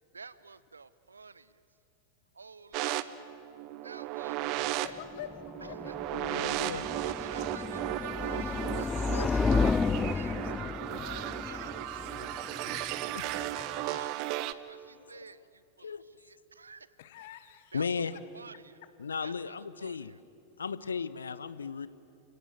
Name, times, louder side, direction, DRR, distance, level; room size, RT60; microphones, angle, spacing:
voice 1, 0.1-1.6 2.3-3.3 3.8-5.0 5.9-6.0 6.7-9.7 10.1-10.4 11.0-12.0 12.8-13.0 13.8-16.9 17.7-18.0 18.3-18.8 19.2-20.2, right 4 dB, 75° right, 17 dB, 0.7 m, -50 dB
sound 1, 2.7-14.5, right 15 dB, 40° right, 0.8 m, -35 dB
voice 2, 4.6-5.3 5.6-6.5 8.6-8.8 9.6-11.1 11.5-14.0 17.0-17.8 18.1-18.2 18.8-18.9, left 11 dB, 55° left, 13 dB, 1.3 m, -49 dB
sound 2, 5.0-14.0, left 4 dB, 15° left, 0.5 m, -33 dB
voice 3, 6.1-6.8 9.1-9.4 15.1-15.2 15.8-16.0 17.7-18.1 19.0-20.1 20.6-21.9, left 5 dB, 70° left, 16 dB, 0.8 m, -35 dB
30.0 x 17.0 x 8.2 m, 2.7 s
figure-of-eight pair, 90°, 0 cm